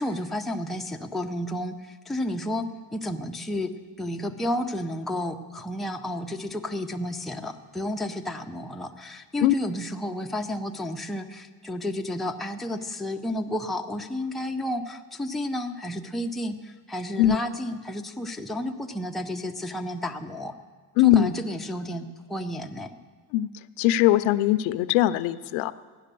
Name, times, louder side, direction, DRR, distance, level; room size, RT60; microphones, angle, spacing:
voice 1, 0.0-3.7 4.0-20.5 21.0-22.9, left 1 dB, ahead, 2 dB, 0.6 m, -31 dB
voice 2, 21.0-21.3 23.3-23.5 23.8-25.7, left 13 dB, 75° left, 14 dB, 0.7 m, -20 dB
14.5 x 10.0 x 6.8 m, 1.5 s
cardioid pair, 115°, 48 cm